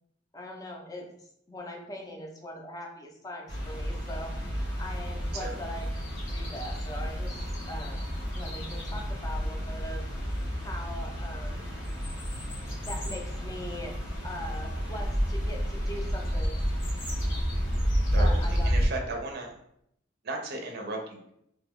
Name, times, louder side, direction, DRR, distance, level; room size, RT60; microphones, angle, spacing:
voice 1, 0.3-1.1 1.5-5.9 6.3-10.0 10.6-11.5 12.9-13.9 14.2-16.7 18.2-18.7 19.1-19.2, left 1 dB, 20° left, 1 dB, 0.5 m, -41 dB
sound 1, 3.5-18.9, equal, 80° left, 1.1 m, -30 dB
voice 2, 18.1-19.5 20.2-21.3, right 2 dB, 55° right, 3 dB, 0.5 m, -35 dB
2.8 x 2.3 x 3.4 m, 0.73 s
head